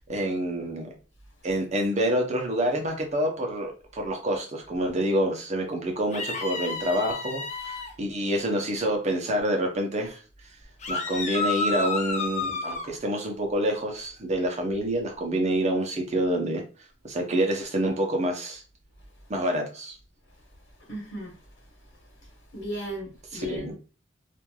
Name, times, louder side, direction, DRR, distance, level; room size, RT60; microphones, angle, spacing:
voice 1, 0.1-0.9 1.4-10.2 10.9-16.6 17.0-18.6 19.3-19.9 23.3-23.7, right 1 dB, 40° right, 0.7 m, -27 dB
sound 1, 6.1-7.9 10.8-12.9, left 3 dB, 40° left, 0.5 m, -30 dB
voice 2, 20.9-21.3 22.5-23.7, equal, 65° left, 1.1 m, -36 dB
3.1 x 2.5 x 2.3 m
head